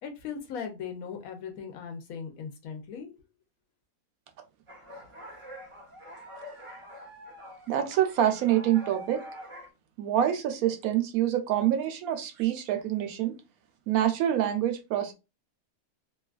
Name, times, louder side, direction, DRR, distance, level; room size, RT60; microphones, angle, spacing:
voice 1, 0.0-3.1, left 6 dB, 85° left, 1.1 m, -38 dB
sound 1, 4.7-9.7, equal, 30° right, 0.6 m, -45 dB
voice 2, 7.7-9.2 10.0-13.4 13.9-15.1, right 11 dB, 90° right, 1.1 m, -26 dB
3.0 x 2.3 x 2.3 m
omnidirectional pair, 1.5 m